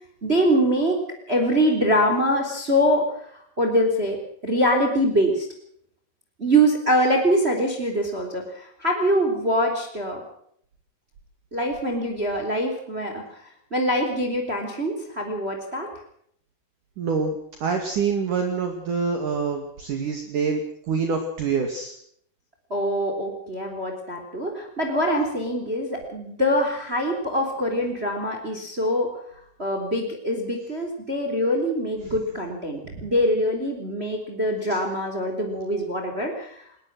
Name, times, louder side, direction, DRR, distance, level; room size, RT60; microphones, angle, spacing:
voice 1, 0.2-1.0 1.3-3.1 3.6-5.5 6.4-10.2 11.5-13.2 13.7-15.9 22.7-29.1 29.6-36.6, equal, 15° right, 4 dB, 3.5 m, -24 dB
voice 2, 17.0-20.6 20.9-22.0 32.1-32.2 32.9-33.1 34.6-34.8, right 5 dB, 55° right, 4 dB, 3.5 m, -26 dB
21.5 x 20.5 x 6.2 m, 0.66 s
omnidirectional pair, 4.7 m